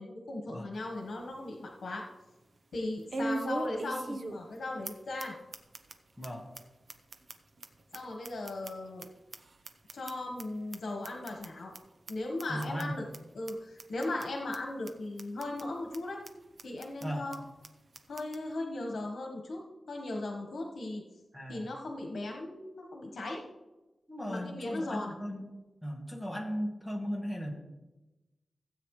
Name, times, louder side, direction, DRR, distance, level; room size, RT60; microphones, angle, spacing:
voice 1, 0.0-2.0 2.7-5.3 7.9-9.1 9.9-11.7 12.1-13.0 13.3-16.2 16.6-17.4 18.1-19.6 19.9-21.0 21.5-23.4 24.3-25.1, left 2 dB, 75° left, 0 dB, 1.5 m, -37 dB
sound 1, 0.7-0.8 1.3-1.4 3.1-4.6 4.8-4.9 5.2-5.3 5.5-5.9 6.2-6.3 6.5-6.6 6.9-9.0 9.3-10.4 10.7-10.8 11.0-11.5 11.7-11.8 12.1-12.2 12.4-12.8 13.1-13.2 13.5-13.6 13.8-14.2 14.5-14.6 14.9-15.0 15.2-15.6 15.9-16.0 16.2-16.3 16.6-17.0 17.3-17.4 17.6-17.7 17.9-18.4, right 2 dB, 45° right, 0.8 m, -38 dB
voice 2, 12.5-13.0 17.0-17.2 21.3-21.7 24.1-25.4 25.8-27.5, equal, ahead, -2 dB, 1.9 m, -36 dB
16.0 x 8.3 x 3.3 m, 1.1 s
wide cardioid pair, 175°, 0 cm